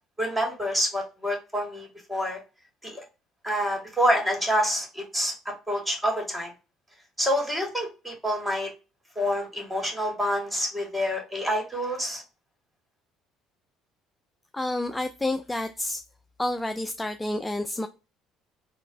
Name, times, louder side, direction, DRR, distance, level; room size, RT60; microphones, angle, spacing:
voice 1, 0.2-2.4 2.8-3.0 3.4-6.5 7.2-8.7 9.2-12.2, equal, 10° right, 2.1 m, -27 dB
voice 2, 14.5-16.0 16.4-17.9, left 1 dB, 15° left, 0.3 m, -29 dB
4.0 x 2.4 x 3.2 m
hypercardioid pair, 60°, 0 cm